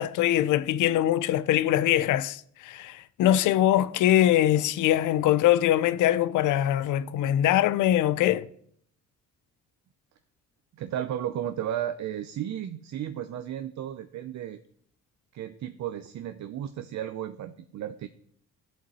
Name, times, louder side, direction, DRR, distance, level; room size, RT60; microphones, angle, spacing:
voice 1, 0.0-8.5, left 12 dB, 85° left, 0.6 m, -23 dB
voice 2, 10.8-14.6 15.3-18.1, right 10 dB, 65° right, 0.8 m, -34 dB
15.0 x 8.1 x 4.2 m
cardioid pair, 90°, 30 cm